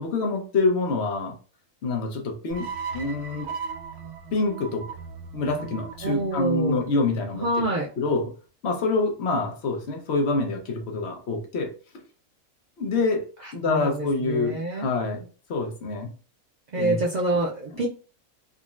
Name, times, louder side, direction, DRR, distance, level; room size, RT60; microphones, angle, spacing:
voice 1, 0.0-1.4 1.8-3.5 4.3-4.9 5.3-7.5 8.0-8.3 8.6-11.7 12.8-13.3 13.5-15.2 15.5-16.1 16.8-17.0, left 3 dB, 55° left, 3 dB, 0.9 m, -26 dB
sound 1, 2.5-7.7, right 6 dB, 65° right, 0.7 m, -38 dB
voice 2, 6.0-6.8 7.4-7.9 13.4-14.9 16.7-17.9, right 2 dB, 90° right, -3 dB, 0.3 m, -27 dB
3.8 x 2.1 x 2.4 m, 0.36 s
omnidirectional pair, 1.5 m